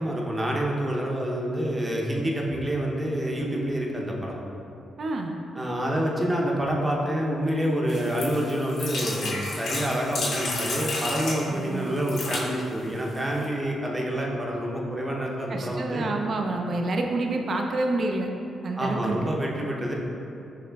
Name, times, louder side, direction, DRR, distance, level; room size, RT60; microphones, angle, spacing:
voice 1, 0.0-4.4 5.5-16.1 18.8-19.9, equal, 20° right, -2 dB, 0.6 m, -27 dB
voice 2, 5.0-5.3 11.5-12.0 15.5-18.3 18.6-19.2, right 2 dB, 55° right, 2 dB, 0.3 m, -28 dB
sound 1, 7.9-11.4 12.0-12.5 13.1-13.2 13.4-13.5, left 2 dB, 75° left, 0.7 m, -31 dB
5.8 x 2.9 x 2.3 m, 2.7 s
cardioid pair, 80°, 0 cm